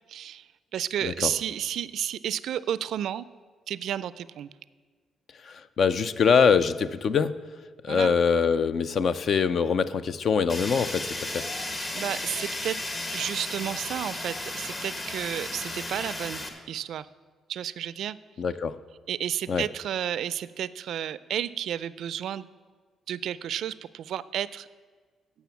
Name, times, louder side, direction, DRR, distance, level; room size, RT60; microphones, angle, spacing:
voice 1, 0.1-3.3 3.7-4.5 7.9-8.1 11.9-12.8 13.1-17.1 17.5-18.2 19.1-22.5 23.1-24.7, right 10 dB, 70° right, 17 dB, 0.3 m, -32 dB
voice 2, 5.4-7.4 7.8-11.5 18.4-18.7 19.5-19.6, left 6 dB, 55° left, 14 dB, 0.5 m, -24 dB
Fire, 10.5-16.5, left 2 dB, 35° left, 1.4 m, -34 dB
10.5 x 7.0 x 7.0 m, 1.5 s
cardioid pair, 90°, 0 cm